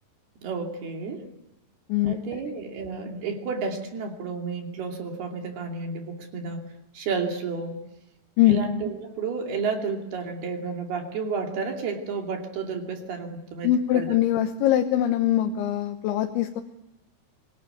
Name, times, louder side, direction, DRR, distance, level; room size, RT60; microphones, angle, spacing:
voice 1, 0.4-1.2 2.0-6.6 6.9-7.8 8.5-13.7 13.9-14.1, right 4 dB, 60° right, 2 dB, 4.6 m, -31 dB
voice 2, 1.9-2.4 8.4-8.6 13.6-16.6, left 12 dB, 85° left, 5 dB, 3.5 m, -22 dB
24.5 x 20.0 x 9.4 m, 0.90 s
omnidirectional pair, 5.2 m